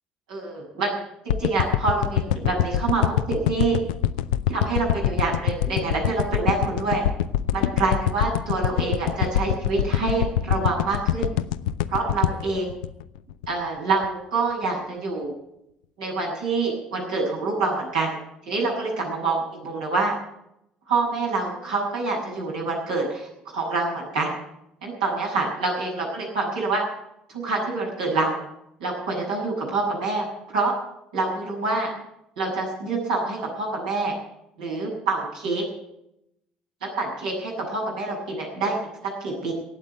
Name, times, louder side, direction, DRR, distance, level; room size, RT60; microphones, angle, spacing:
voice 1, 0.3-0.9 1.2-3.8 4.5-7.0 7.5-11.3 11.9-12.7 13.5-15.3 16.0-18.2 18.4-20.1 20.9-24.4 24.8-26.8 27.3-28.4 28.8-30.3 30.5-30.7 31.1-31.9 32.4-34.1 34.6-35.6 37.0-38.8 39.0-39.5, right 3 dB, 80° right, -4 dB, 7.3 m, -26 dB
sound 1, 1.3-13.6 14.0-14.1, left 11 dB, 75° left, 0.5 m, -24 dB
18.5 x 7.6 x 9.5 m, 0.80 s
hypercardioid pair, 55°, 4 cm